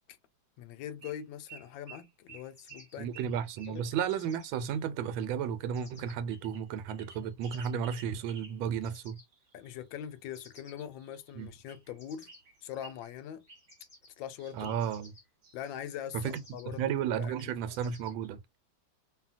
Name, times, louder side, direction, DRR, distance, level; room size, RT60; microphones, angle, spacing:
voice 1, 0.6-3.1 3.7-3.8 9.5-12.3 12.6-13.4 14.2-14.7 15.5-17.8, left 10 dB, 80° left, 1.3 m, -42 dB
Song Thrush, 1.0-1.2 1.5-4.8 6.3-8.6 9.2-10.2 11.0-12.0 12.3-13.1 13.5-13.8 14.4-16.6 17.4-17.5 17.7-18.0, right 4 dB, 50° right, 0.8 m, -54 dB
sound 1, 2.5-4.6 5.7-6.1 6.9-7.7 8.8-9.5 10.3-10.9 12.0-14.4 14.8-15.2 16.2-16.8 17.3-18.3, left 2 dB, 30° left, 0.9 m, -58 dB
voice 2, 3.0-9.2 11.3-11.5 14.5-15.1 16.1-18.4, right 8 dB, 90° right, 1.4 m, -33 dB
2.8 x 2.8 x 2.4 m
omnidirectional pair, 2.1 m